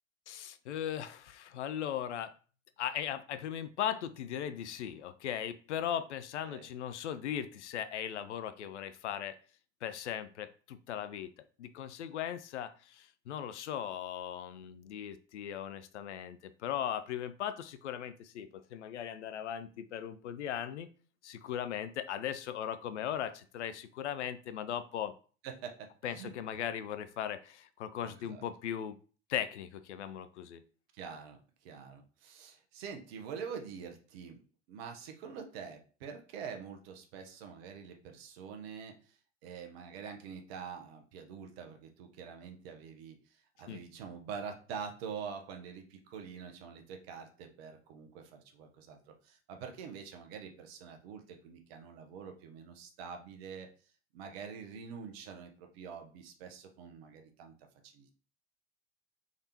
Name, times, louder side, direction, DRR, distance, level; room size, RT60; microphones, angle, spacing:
voice 1, 0.3-2.3 2.8-9.4 9.8-11.3 11.6-20.9 21.2-25.1 26.0-29.0 29.3-30.6 43.7-43.8, left 9 dB, 75° left, 12 dB, 0.5 m, -38 dB
voice 2, 25.4-26.3 28.0-28.4 30.9-34.4 34.7-53.7 54.1-57.5 57.8-58.1, right 6 dB, 60° right, 4 dB, 1.0 m, -46 dB
3.6 x 3.4 x 2.8 m, 0.38 s
figure-of-eight pair, 75°, 35 cm